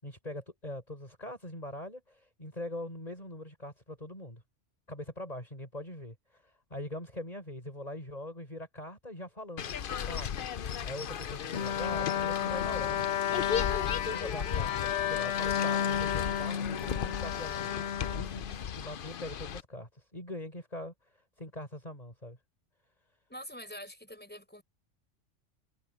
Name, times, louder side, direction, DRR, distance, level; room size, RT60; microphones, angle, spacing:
voice 1, 0.0-4.4 4.9-9.8 10.1-10.3 10.8-13.1 13.9-17.7 18.1-22.4, left 1 dB, 35° left, 6.7 m, -42 dB
sound 1, 9.6-19.6, left 8 dB, 50° left, 0.8 m, -36 dB
Bowed string instrument, 11.5-18.9, left 9 dB, 75° left, 1.1 m, -32 dB
voice 2, 23.3-24.6, equal, 10° left, 4.8 m, -45 dB
omnidirectional pair, 1.2 m